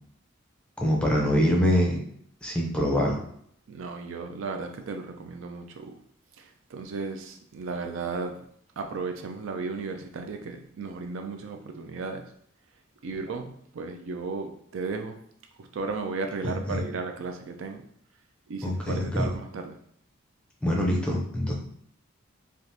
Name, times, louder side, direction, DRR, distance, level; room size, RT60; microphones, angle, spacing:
voice 1, 0.8-2.0 2.4-3.2 16.4-16.8 18.6-19.3 20.6-21.5, equal, 5° left, -2 dB, 0.5 m, -24 dB
voice 2, 3.7-5.9 6.4-8.4 8.8-12.2 13.0-15.2 15.6-17.8 18.5-19.8, right 4 dB, 65° right, 5 dB, 0.4 m, -35 dB
3.4 x 2.4 x 2.7 m, 0.68 s
head